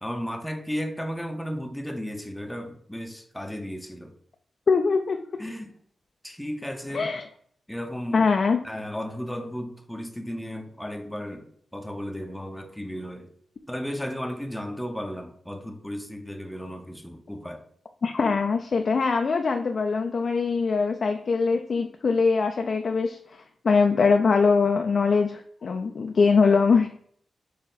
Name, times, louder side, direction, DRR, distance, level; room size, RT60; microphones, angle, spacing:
voice 1, 0.0-4.1 5.4-5.7 6.2-7.1 7.7-8.3 8.6-13.3 13.7-17.6 26.4-26.6, equal, 5° left, 5 dB, 0.6 m, -34 dB
voice 2, 4.7-5.2 6.9-7.2 8.1-8.6 18.0-23.2 23.6-26.9, left 4 dB, 60° left, 4 dB, 0.4 m, -22 dB
4.3 x 2.9 x 3.8 m, 0.62 s
cardioid pair, 60°, 0 cm